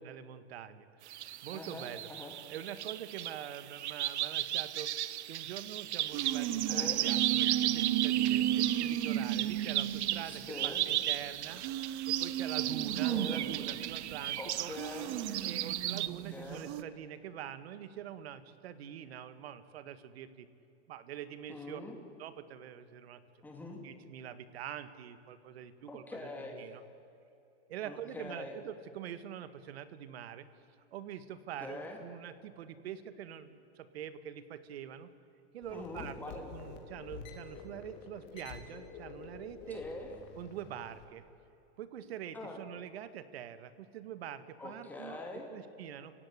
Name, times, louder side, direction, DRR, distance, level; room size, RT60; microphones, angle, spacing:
voice 1, 0.0-2.1 2.5-5.0 5.3-11.6 12.1-14.7 15.5-20.5 20.9-21.8 22.2-23.2 23.8-26.8 27.7-30.5 30.9-35.1 35.5-39.8 40.4-41.2 41.8-45.2 45.5-46.2, right 10 dB, 65° right, 13 dB, 1.8 m, -45 dB
sound 1, 1.1-16.1, right 13 dB, 80° right, 1.0 m, -35 dB
voice 2, 1.5-2.3 6.7-7.0 10.2-10.8 13.0-13.4 14.4-15.2 16.1-16.7 21.5-21.9 23.4-23.8 25.9-26.6 27.8-28.5 31.6-32.0 35.7-36.5 39.7-40.1 42.3-42.6 44.6-45.5, left 2 dB, 5° left, 1 dB, 2.6 m, -44 dB
sound 2, 6.1-11.2 11.5-16.8, right 12 dB, 20° right, 0.5 m, -34 dB
sound 3, 35.6-41.0, left 5 dB, 40° left, 3.6 m, -49 dB
30.0 x 17.0 x 9.8 m, 2.7 s
supercardioid pair, 175°, 33 cm